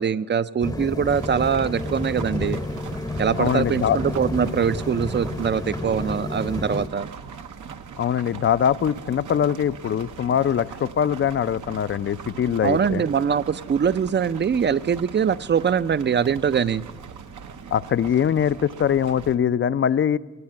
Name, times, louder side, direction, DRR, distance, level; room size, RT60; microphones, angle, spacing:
voice 1, 0.0-2.6 3.2-7.1 12.6-16.8, right 7 dB, 35° right, 16 dB, 0.4 m, -23 dB
sound 1, 0.6-6.9, left 2 dB, 15° left, 0.7 m, -30 dB
sound 2, 1.1-19.4, right 6 dB, 80° right, 0.8 m, -40 dB
voice 2, 3.4-4.0 8.0-13.0 17.7-20.2, left 9 dB, 40° left, 17 dB, 0.4 m, -22 dB
16.5 x 8.8 x 8.7 m, 1.3 s
cardioid pair, 85°, 30 cm